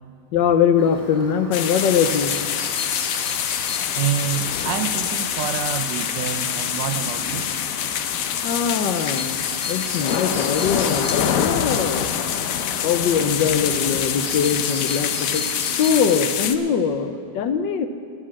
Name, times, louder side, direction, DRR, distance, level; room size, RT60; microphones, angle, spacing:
voice 1, 0.3-2.3 8.4-12.1 12.3-15.4 15.8-17.9, left 7 dB, 85° left, 9 dB, 1.4 m, -22 dB
Chirp tweet, 0.8-16.2, left 1 dB, 20° left, 3.8 m, -37 dB
sound 1, 1.5-16.6, left 9 dB, 65° left, 0.9 m, -25 dB
voice 2, 3.9-7.5, right 10 dB, 80° right, 10 dB, 1.4 m, -27 dB
11.0 x 9.7 x 7.6 m, 2.2 s
omnidirectional pair, 1.9 m